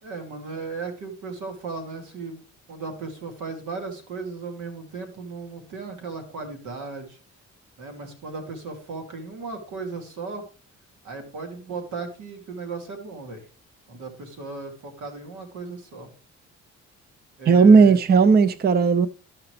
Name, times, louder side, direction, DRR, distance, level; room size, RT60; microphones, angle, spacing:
voice 1, 0.0-2.4 2.7-7.2 7.8-10.5 11.0-13.4 13.9-16.1 17.4-18.0, right 4 dB, 80° right, 2.7 m, -36 dB
voice 2, 17.5-19.1, right 5 dB, 35° right, 0.5 m, -15 dB
13.5 x 5.9 x 3.2 m
cardioid pair, 90°, 30 cm